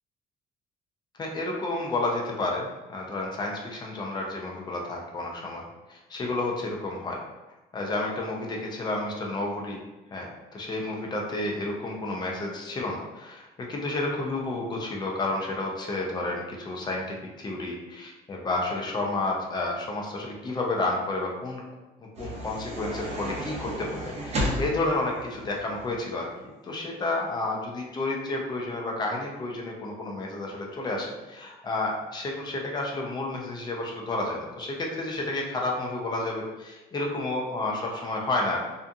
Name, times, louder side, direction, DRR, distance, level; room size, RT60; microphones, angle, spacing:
voice 1, 1.2-5.6 5.9-7.2 7.7-9.8 10.1-21.6 22.2-26.3 26.6-38.6, left 2 dB, 25° left, -1 dB, 0.5 m, -31 dB
sound 1, 22.1-26.0, equal, 40° right, 0.7 m, -33 dB
2.5 x 2.3 x 2.6 m, 1.1 s
cardioid pair, 110°, 17 cm